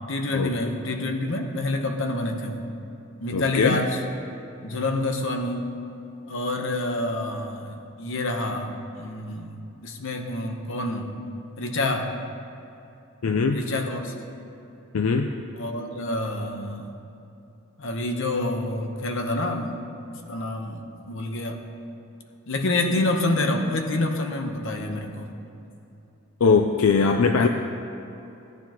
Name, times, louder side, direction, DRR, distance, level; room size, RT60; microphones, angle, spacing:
voice 1, 0.1-2.6 3.2-4.0 4.6-5.8 6.3-9.6 9.8-11.2 11.6-12.1 13.5-14.1 15.6-17.0 17.8-19.8 20.3-21.6 22.5-25.3, left 2 dB, 65° left, 4 dB, 1.0 m, -27 dB
voice 2, 3.3-3.8 13.2-13.6 14.9-15.3 26.4-27.5, left 5 dB, 85° left, 5 dB, 0.5 m, -20 dB
16.5 x 9.6 x 3.0 m, 2.9 s
head